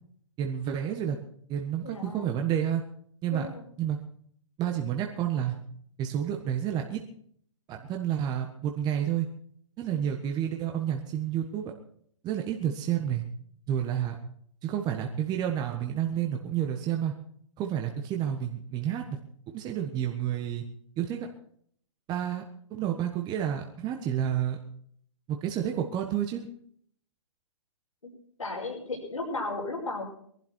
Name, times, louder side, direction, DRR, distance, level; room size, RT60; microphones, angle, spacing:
voice 1, 0.4-1.2 1.5-2.8 3.2-3.5 3.8-4.0 4.6-5.6 6.0-7.0 7.7-9.3 9.8-11.6 12.2-13.2 13.7-14.1 14.6-17.1 17.6-19.0 19.5-20.6 21.0-21.2 22.1-22.4 22.7-24.6 25.3-26.5, right 10 dB, 25° right, 3 dB, 1.4 m, -30 dB
voice 2, 1.8-2.3 3.3-3.7 28.0-28.1 28.4-30.1, left 2 dB, 90° left, -2 dB, 5.3 m, -35 dB
21.5 x 12.0 x 4.5 m, 0.64 s
hypercardioid pair, 125°, 17 cm